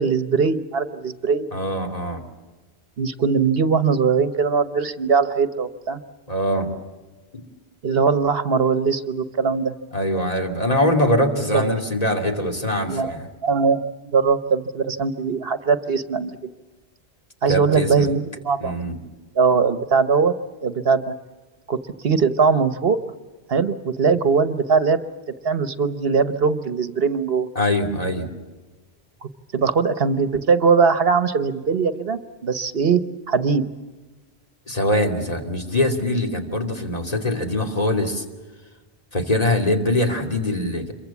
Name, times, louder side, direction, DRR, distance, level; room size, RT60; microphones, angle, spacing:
voice 1, 0.0-1.5 3.0-6.0 7.8-9.7 11.5-11.7 12.8-13.1 13.4-16.5 17.4-18.8 19.3-20.3 20.6-21.1 21.7-21.8 22.0-23.0 23.5-25.0 25.4-27.5 29.5-33.0 33.3-33.7, right 5 dB, 65° right, 12 dB, 1.2 m, -20 dB
voice 2, 1.5-2.2 6.3-6.7 7.3-7.5 9.9-13.3 17.5-18.1 18.6-18.9 27.5-28.3 34.7-38.2 39.1-40.9, left 1 dB, 35° left, 3 dB, 2.8 m, -23 dB
27.0 x 23.0 x 7.2 m, 1.3 s
omnidirectional pair, 1.1 m